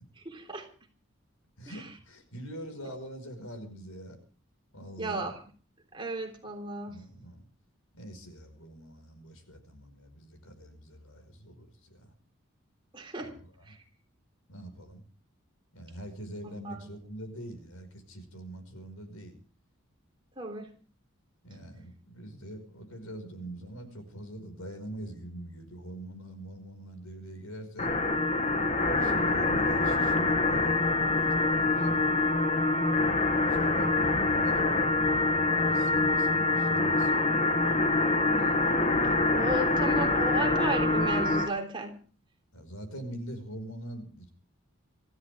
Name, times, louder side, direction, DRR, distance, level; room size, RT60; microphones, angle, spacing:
voice 1, 0.3-0.7 5.0-5.3 5.9-7.0 12.9-13.3 13.7-13.8 16.4-16.8 20.4-20.7 38.3-38.7 39.0-42.0, right 2 dB, 25° right, 3 dB, 3.5 m, -34 dB
voice 2, 1.6-4.2 4.7-5.3 6.8-7.4 7.9-12.1 13.2-13.8 14.5-15.0 15.7-19.4 21.4-28.0 28.9-30.8 31.2-32.1 33.4-34.6 35.0-37.1 39.4-39.5 42.5-44.3, right 1 dB, 85° left, 7 dB, 5.3 m, -44 dB
sound 1, 27.8-41.5, left 2 dB, 30° left, 1.3 m, -25 dB
25.5 x 14.5 x 3.5 m, 0.40 s
head